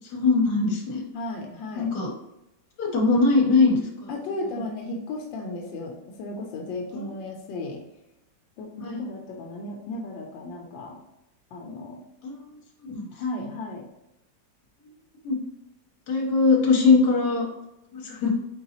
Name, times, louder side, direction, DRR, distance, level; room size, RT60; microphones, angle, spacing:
voice 1, 0.1-1.0 1.7-2.1 2.8-4.1 6.9-7.0 8.8-9.0 12.2-12.4 12.9-13.1 15.2-15.4 16.1-17.5 17.9-18.3, left 4 dB, 65° left, -1 dB, 1.6 m, -21 dB
voice 2, 1.1-1.9 4.1-7.8 8.6-11.0 11.5-12.0 13.1-13.9, left 2 dB, 90° left, 1 dB, 1.4 m, -35 dB
4.3 x 3.9 x 2.8 m, 0.88 s
omnidirectional pair, 2.0 m